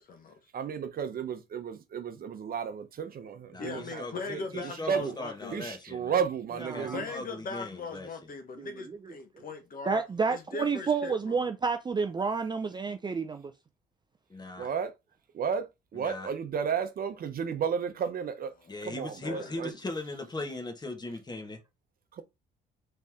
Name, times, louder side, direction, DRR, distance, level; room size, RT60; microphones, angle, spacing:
voice 1, 0.0-0.4 3.6-5.6 6.9-10.0 10.3-11.5 18.6-18.8 19.2-19.6, left 3 dB, 50° left, 1.4 m, -40 dB
voice 2, 0.5-4.0 4.3-5.1 5.5-7.0 14.6-14.9 15.3-18.5 18.9-19.7, right 7 dB, 50° right, 0.8 m, -33 dB
voice 3, 3.5-6.2 6.6-8.1 14.3-14.7 15.9-16.3 18.7-21.6, left 2 dB, 20° left, 1.4 m, -39 dB
voice 4, 6.6-7.0 8.6-9.4 9.9-13.5, right 5 dB, 25° right, 0.4 m, -30 dB
4.1 x 3.2 x 3.6 m
cardioid pair, 95°, 19 cm